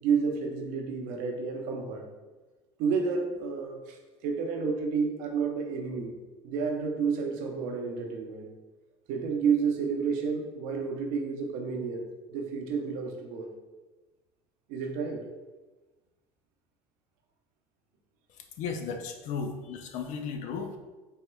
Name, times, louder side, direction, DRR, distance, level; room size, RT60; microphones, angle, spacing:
voice 1, 0.0-2.0 2.8-4.0 4.2-6.1 6.4-8.5 9.1-12.0 12.3-13.5 14.7-15.2, right 5 dB, 70° right, 2 dB, 0.7 m, -30 dB
voice 2, 18.6-20.8, left 5 dB, 60° left, 5 dB, 0.6 m, -35 dB
4.3 x 3.5 x 2.2 m, 1.2 s
supercardioid pair, 95°, 14 cm